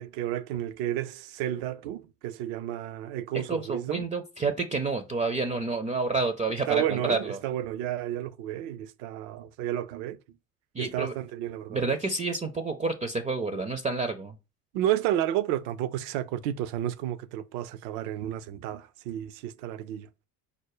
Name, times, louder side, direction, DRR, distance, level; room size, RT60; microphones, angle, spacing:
voice 1, 0.0-4.1 6.7-10.2 10.8-12.0 14.7-20.1, right 12 dB, 60° right, 0.6 m, -31 dB
voice 2, 3.5-7.4 10.7-11.1 11.7-14.3, right 3 dB, 15° right, 0.4 m, -29 dB
4.9 x 2.1 x 4.7 m
hypercardioid pair, 65°, 49 cm